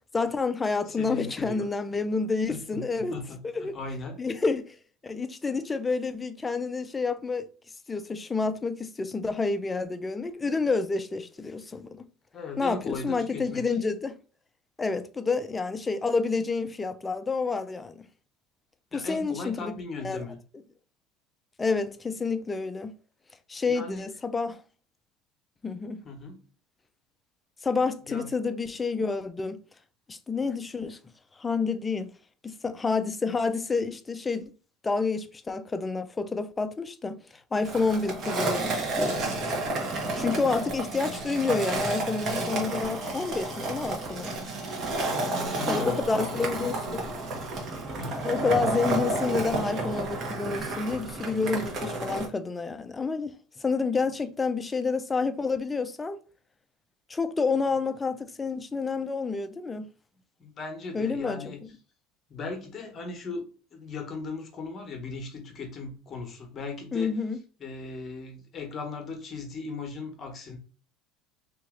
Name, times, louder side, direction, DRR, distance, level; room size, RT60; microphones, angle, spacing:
voice 1, 0.1-3.1 3.4-3.8 4.2-4.8 5.0-7.5 7.9-12.0 12.6-14.1 14.8-18.1 18.9-19.7 20.0-20.2 21.6-22.9 23.5-24.6 25.6-26.0 27.6-29.6 30.1-31.0 31.4-32.1 32.4-34.5 34.8-37.2 37.5-39.2 40.2-44.3 45.7-47.1 48.1-53.3 53.6-56.2 57.1-59.9 60.9-61.5 66.9-67.4, left 4 dB, 15° left, 0.4 m, -29 dB
voice 2, 0.9-1.7 2.5-4.2 12.3-13.6 18.9-20.4 23.7-24.0 26.0-26.4 28.1-28.3 44.9-46.7 48.0-48.2 60.4-61.6 62.3-67.1 67.6-70.6, left 3 dB, 35° left, 1.1 m, -38 dB
Skateboard, 37.6-52.3, right 2 dB, 45° right, 1.2 m, -31 dB
2.9 x 2.9 x 3.7 m
supercardioid pair, 120°, 0 cm